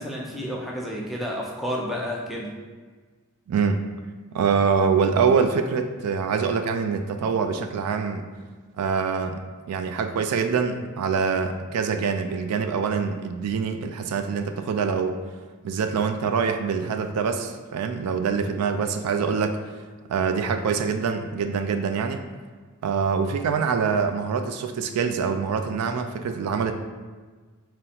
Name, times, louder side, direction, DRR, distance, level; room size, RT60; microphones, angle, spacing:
voice 1, 0.0-2.5, equal, ahead, -4 dB, 0.5 m, -31 dB
voice 2, 3.5-3.8 4.3-8.2 8.8-15.2 15.6-19.6 20.1-22.2 22.8-26.7, right 5 dB, 80° right, 7 dB, 0.3 m, -25 dB
3.7 x 2.1 x 4.1 m, 1.4 s
head